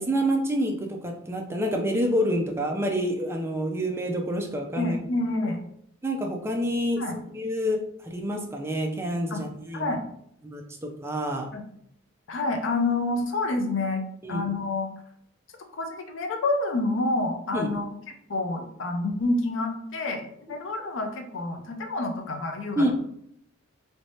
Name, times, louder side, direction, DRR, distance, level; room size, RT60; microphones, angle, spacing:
voice 1, 0.0-5.0 6.0-7.0 7.3-7.8 8.1-9.9 10.4-11.5 14.2-14.4 17.5-17.7 22.8-22.9, equal, 15° right, 1 dB, 0.4 m, -27 dB
voice 2, 4.8-5.6 7.0-7.2 9.3-9.4 9.7-10.0 11.5-11.6 12.3-14.9 15.7-17.9 18.3-22.9, left 2 dB, 65° left, 5 dB, 0.5 m, -28 dB
3.2 x 3.1 x 2.7 m, 0.71 s
head